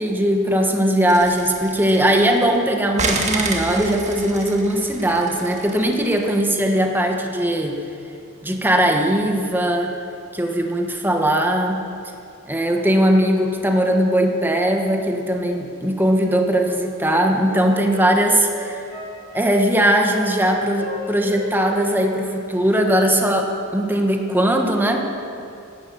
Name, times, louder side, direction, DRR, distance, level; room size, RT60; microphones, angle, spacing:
voice 1, 0.0-7.8 8.4-9.9 10.3-11.8 12.5-18.8 19.3-25.1, right 1 dB, 10° right, 2 dB, 1.3 m, -19 dB
sound 1, 1.1-2.6 3.0-6.2, right 3 dB, 35° right, 1.7 m, -29 dB
Wind instrument woodwind instrument, 16.2-18.1 18.4-19.5 19.9-20.5 20.8-21.4 21.7-21.9 22.2-22.8 23.1-23.3, equal, 85° right, 4.1 m, -36 dB
16.5 x 12.0 x 6.6 m, 2.6 s
head